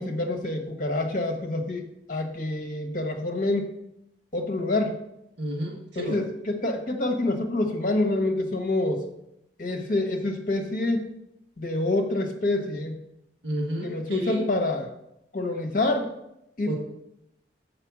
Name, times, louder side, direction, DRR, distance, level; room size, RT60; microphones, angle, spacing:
voice 1, 0.0-3.7 4.3-5.0 6.1-9.0 9.6-11.1 11.6-12.9 13.8-14.9 15.3-16.1 16.6-16.8, left 2 dB, 50° left, 4 dB, 1.2 m, -27 dB
voice 2, 5.4-6.2 13.4-14.5 16.6-16.8, equal, 85° right, 0 dB, 1.5 m, -30 dB
6.8 x 5.4 x 6.1 m, 0.82 s
head